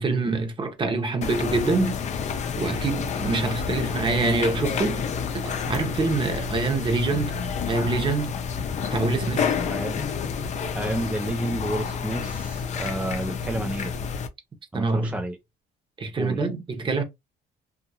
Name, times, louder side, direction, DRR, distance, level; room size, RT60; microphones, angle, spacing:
voice 1, 0.0-2.0 2.6-5.0 5.3-7.3 7.7-8.4 8.9-9.6 14.7-15.2 16.0-17.0, right 3 dB, 30° right, 0.9 m, -25 dB
sound 1, 1.2-14.3, left 6 dB, 45° left, 0.5 m, -29 dB
voice 2, 9.7-10.1 10.7-13.9 14.7-15.4 16.2-16.5, right 1 dB, 10° right, 0.3 m, -30 dB
2.5 x 2.4 x 2.8 m
cardioid pair, 110°, 17 cm